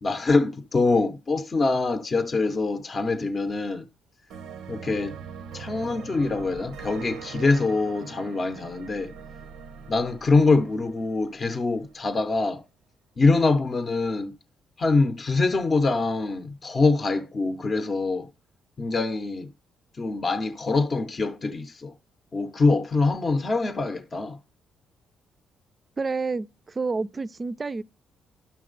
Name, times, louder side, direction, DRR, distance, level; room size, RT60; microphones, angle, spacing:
voice 1, 0.0-3.9 4.7-5.2 5.5-9.1 9.9-12.6 13.2-14.3 14.8-18.3 18.8-19.5 20.0-21.9 22.3-24.4, left 3 dB, 35° left, 0.6 m, -24 dB
sound 1, 4.3-11.9, right 7 dB, 90° right, 0.6 m, -42 dB
voice 2, 26.0-27.8, right 4 dB, 30° right, 0.4 m, -29 dB
11.0 x 5.8 x 3.8 m
cardioid pair, 90°, 0 cm